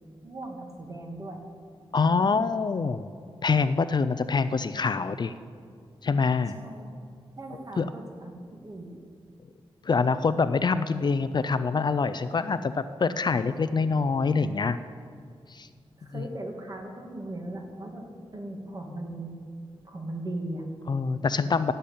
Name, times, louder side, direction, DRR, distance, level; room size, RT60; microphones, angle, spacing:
voice 1, 0.2-1.4 6.5-6.9 7.4-8.9 16.0-18.1 18.3-19.3 19.8-20.7, right 1 dB, 35° right, 1 dB, 2.2 m, -38 dB
voice 2, 1.9-3.1 3.4-5.3 6.0-6.6 7.8-7.9 9.9-14.8 15.5-15.7 16.1-16.2 20.9-21.7, left 4 dB, 45° left, 12 dB, 0.5 m, -25 dB
16.0 x 6.8 x 8.6 m, 2.2 s
wide cardioid pair, 100°, 10 cm